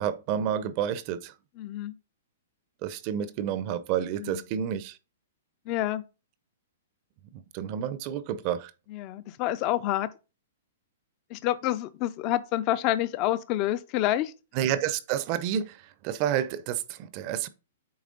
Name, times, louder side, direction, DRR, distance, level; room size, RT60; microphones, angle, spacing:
voice 1, 0.0-1.3 2.8-5.0 7.5-8.7 14.6-15.8 16.0-17.5, right 9 dB, 40° right, 0.6 m, -29 dB
voice 2, 1.6-2.0 4.2-4.5 5.7-6.0 8.9-10.1 11.3-14.3, left 14 dB, 35° left, 0.5 m, -28 dB
8.6 x 3.3 x 3.9 m
hypercardioid pair, 145°, 0 cm